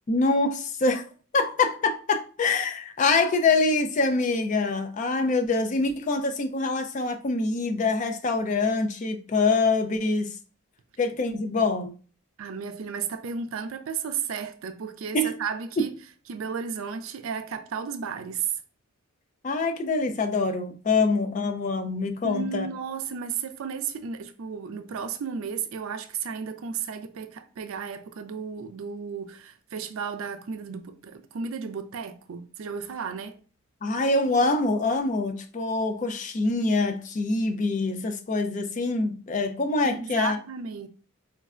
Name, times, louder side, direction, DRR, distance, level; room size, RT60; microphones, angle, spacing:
voice 1, 0.1-1.0 1.3-10.3 11.0-11.9 15.1-15.3 19.4-22.7 33.8-40.4, left 3 dB, 35° left, 0.4 m, -25 dB
voice 2, 12.4-16.0 16.3-18.5 22.2-33.4 39.8-40.9, right 6 dB, 70° right, 0.4 m, -33 dB
4.4 x 2.1 x 2.4 m
head